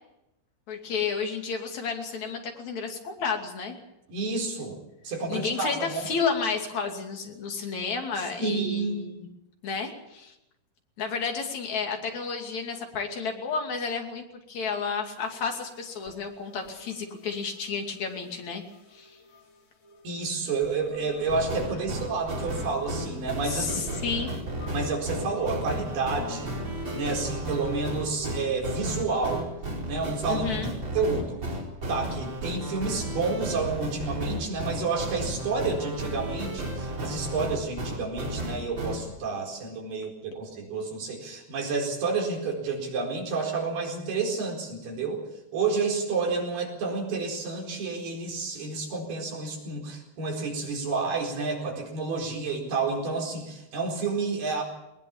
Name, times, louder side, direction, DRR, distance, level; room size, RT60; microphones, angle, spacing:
voice 1, 0.7-3.8 5.3-9.3 9.6-10.3 11.0-18.6 18.9-19.2 23.5-24.4 30.3-30.7, left 5 dB, 50° left, 3 dB, 3.7 m, -31 dB
voice 2, 4.1-4.8 5.0-6.1 8.4-9.0 20.0-23.7 24.0-24.1 24.7-26.5 26.9-29.5 29.8-30.6 30.9-31.4 31.9-45.2 45.5-54.6, right 4 dB, 80° right, 1 dB, 6.5 m, -30 dB
sound 1, 15.2-28.8, left 1 dB, 85° left, 6.4 m, -47 dB
sound 2, 21.3-39.0, right 1 dB, 30° right, 4.9 m, -33 dB
20.5 x 20.0 x 7.2 m, 0.89 s
omnidirectional pair, 4.5 m